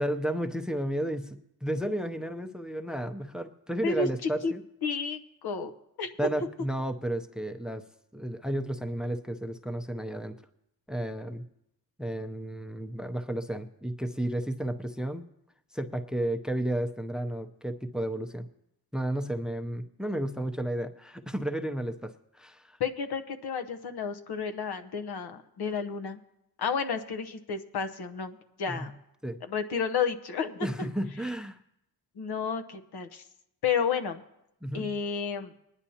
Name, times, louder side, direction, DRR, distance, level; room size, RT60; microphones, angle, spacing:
voice 1, 0.0-4.6 6.2-7.9 8.1-10.4 10.9-11.4 12.0-15.2 15.7-18.5 18.9-22.8 28.7-28.9 29.2-29.4 30.6-31.6 34.6-35.0, right 1 dB, ahead, 8 dB, 0.6 m, -32 dB
voice 2, 4.8-5.7 6.0-6.1 22.8-26.2 26.6-28.9 29.4-30.7 32.2-33.2 33.6-34.2 34.7-35.5, left 6 dB, 85° left, 8 dB, 0.9 m, -31 dB
21.0 x 10.0 x 2.8 m, 0.81 s
wide cardioid pair, 115°, 38 cm